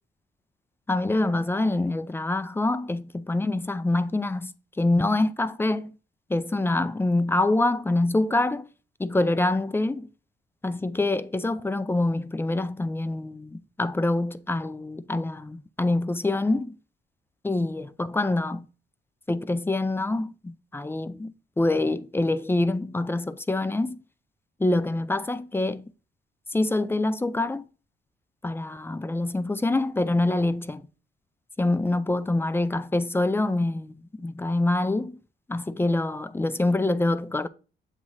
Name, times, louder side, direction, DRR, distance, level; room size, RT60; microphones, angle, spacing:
voice 1, 0.9-5.9 6.3-8.7 9.0-10.1 10.6-16.8 17.4-18.7 19.3-24.0 24.6-25.8 26.5-27.6 28.4-30.8 31.6-35.2 35.5-37.5, left 2 dB, 10° left, 0.4 m, -25 dB
7.4 x 3.0 x 5.5 m
cardioid pair, 90°, 20 cm